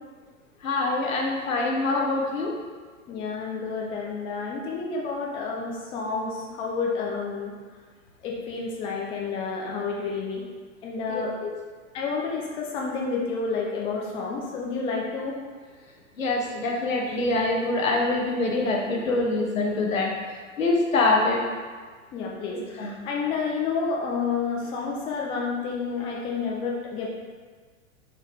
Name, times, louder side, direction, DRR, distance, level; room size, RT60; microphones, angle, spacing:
voice 1, 0.6-2.5 11.1-11.5 16.2-20.1 20.6-21.4 22.5-22.9, left 2 dB, 75° left, 0 dB, 1.0 m, -25 dB
voice 2, 3.1-7.5 8.2-10.4 10.8-11.3 11.9-15.4 22.1-27.1, left 4 dB, 15° left, -2 dB, 0.4 m, -30 dB
4.3 x 3.4 x 3.4 m, 1.5 s
figure-of-eight pair, 95°, 41 cm